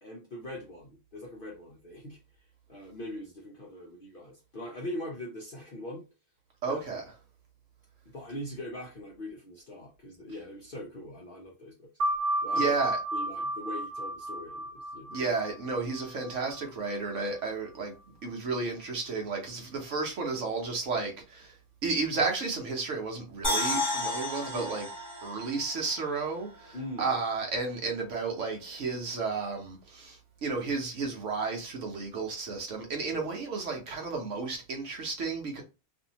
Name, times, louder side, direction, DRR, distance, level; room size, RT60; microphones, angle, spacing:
voice 1, 0.0-2.2 2.7-6.0 6.6-6.8 8.1-11.9 12.4-12.7 13.1-15.3 24.5-24.7 26.7-27.1 33.1-33.3, left 1 dB, 55° left, 0.6 m, -41 dB
voice 2, 6.6-7.0 12.5-13.0 15.1-17.9 18.2-21.6 21.8-24.9 25.2-35.6, right 4 dB, 60° right, 1.0 m, -32 dB
sound 1, 12.0-17.2, right 1 dB, 90° right, 1.2 m, -33 dB
sound 2, 23.4-26.7 27.0-27.1, left 1 dB, 15° left, 1.4 m, -33 dB
2.6 x 2.6 x 2.7 m
omnidirectional pair, 1.5 m